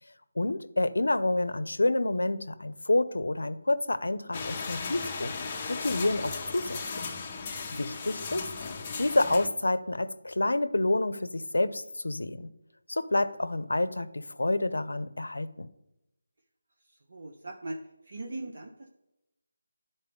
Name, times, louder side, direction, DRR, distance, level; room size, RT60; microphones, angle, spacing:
voice 1, 0.4-5.3 5.7-6.8 7.1-7.2 7.7-8.5 9.0-12.5 12.9-15.7, left 2 dB, 85° left, 14 dB, 0.5 m, -28 dB
sound 1, 4.3-9.5, left 4 dB, 20° left, 0.6 m, -36 dB
voice 2, 16.8-18.9, right 2 dB, 60° right, 2 dB, 0.8 m, -41 dB
11.0 x 4.2 x 3.5 m, 0.91 s
figure-of-eight pair, 170°, 0 cm